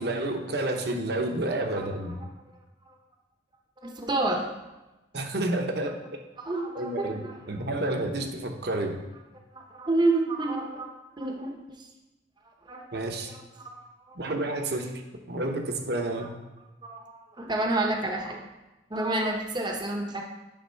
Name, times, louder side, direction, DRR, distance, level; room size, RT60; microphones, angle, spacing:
voice 1, 0.0-2.2 5.1-6.0 6.8-9.0 12.9-13.3 14.1-15.0 15.3-16.3, right 1 dB, 60° right, 4 dB, 0.9 m, -30 dB
voice 2, 3.8-4.5 6.5-7.3 9.5-11.9 12.7-12.8 13.6-14.2 16.8-18.4 18.9-20.2, right 2 dB, 25° right, 2 dB, 0.8 m, -29 dB
10.0 x 3.6 x 5.6 m, 1.1 s
head